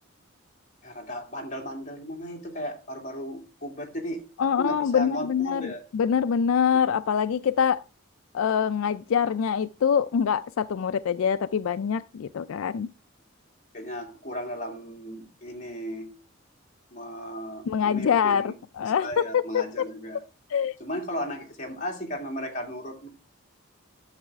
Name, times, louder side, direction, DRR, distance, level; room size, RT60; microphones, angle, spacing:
voice 1, 0.8-4.2 4.6-5.8 13.7-16.2 16.9-18.5 18.8-20.2 20.8-23.1, equal, 35° left, 2.3 m, -35 dB
voice 2, 4.4-7.8 8.3-12.9 17.7-19.9 20.5-20.7, left 7 dB, 70° left, 0.4 m, -25 dB
11.0 x 7.3 x 3.5 m
head